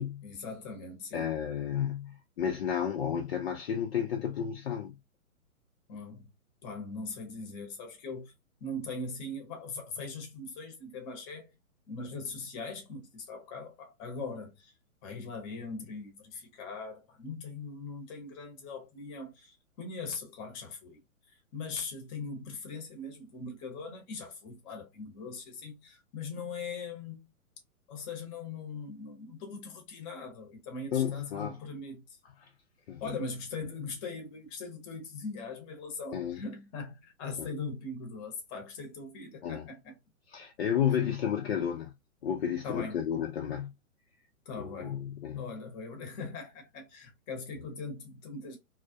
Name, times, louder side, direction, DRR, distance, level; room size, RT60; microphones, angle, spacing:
voice 1, 0.0-1.3 5.9-6.3 6.6-8.3 8.6-11.5 11.9-14.7 15.0-21.0 21.3-27.3 27.9-32.2 33.0-40.0 41.0-41.1 42.6-43.0 44.5-45.0 45.3-48.6, left 3 dB, 25° left, 0.8 m, -41 dB
voice 2, 1.1-5.0 30.9-31.6 32.9-33.2 36.1-36.4 37.4-37.5 39.4-39.7 40.3-41.9 42.2-43.7 44.6-45.5, left 9 dB, 50° left, 0.5 m, -32 dB
2.3 x 2.1 x 2.5 m
hypercardioid pair, 130°, 42 cm